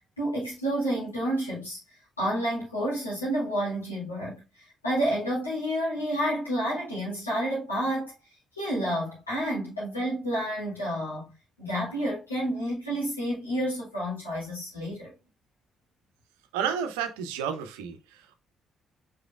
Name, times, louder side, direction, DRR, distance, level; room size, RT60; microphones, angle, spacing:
voice 1, 0.2-8.1 8.5-11.3 11.6-15.1, equal, 85° left, 2.3 m, -30 dB
voice 2, 16.5-18.4, right 8 dB, 70° right, 0.6 m, -31 dB
4.9 x 4.3 x 2.4 m
figure-of-eight pair, 45°, 0 cm